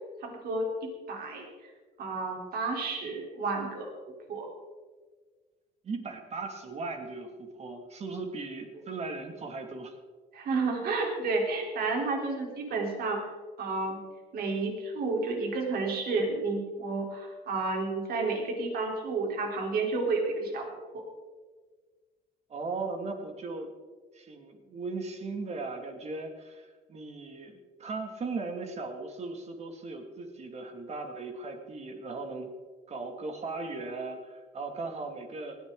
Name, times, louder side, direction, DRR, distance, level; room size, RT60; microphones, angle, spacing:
voice 1, 0.2-1.5 2.0-3.9 4.3-4.5 10.3-13.2 13.6-14.0 14.3-20.7, right 3 dB, 65° right, 1 dB, 3.9 m, -31 dB
voice 2, 5.8-9.9 22.5-23.7 24.1-32.5 32.9-35.6, right 3 dB, 40° right, 4 dB, 2.4 m, -38 dB
19.0 x 14.5 x 3.9 m, 1.4 s
cardioid pair, 110°, 17 cm